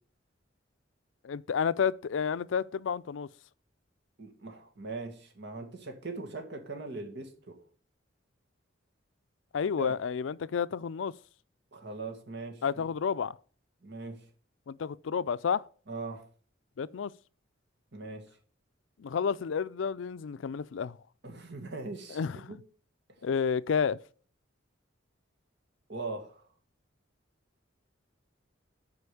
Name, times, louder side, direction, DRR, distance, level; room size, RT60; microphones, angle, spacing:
voice 1, 1.2-3.3 9.5-11.1 12.6-13.4 14.7-15.6 16.8-17.1 19.0-21.0 22.1-22.5 23.2-24.0, left 6 dB, 75° left, 0.4 m, -30 dB
voice 2, 4.2-7.6 9.7-10.0 11.7-12.9 13.8-14.2 15.9-16.2 17.9-18.3 21.2-22.2 22.5-22.6 25.9-26.5, right 3 dB, 60° right, 1.8 m, -40 dB
8.0 x 5.2 x 6.9 m
head